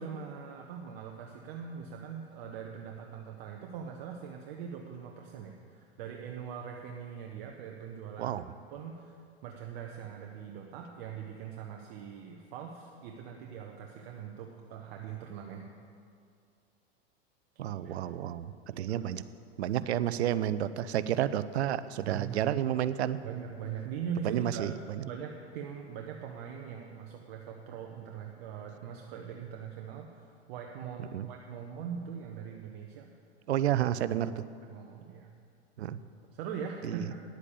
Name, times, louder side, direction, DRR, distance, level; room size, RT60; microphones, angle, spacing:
voice 1, 0.0-8.4 8.7-9.2 9.4-15.7 17.6-18.0 18.7-19.0 22.0-22.4 23.2-24.7 25.0-33.1 34.7-35.3 36.3-37.1, right 7 dB, 55° right, 1 dB, 1.1 m, -41 dB
voice 2, 17.6-19.2 19.6-23.2 24.2-25.1 31.0-31.3 33.5-34.4 35.8-36.0 36.8-37.1, right 11 dB, 80° right, 15 dB, 0.6 m, -31 dB
10.0 x 8.2 x 7.0 m, 2.3 s
hypercardioid pair, 105°, 33 cm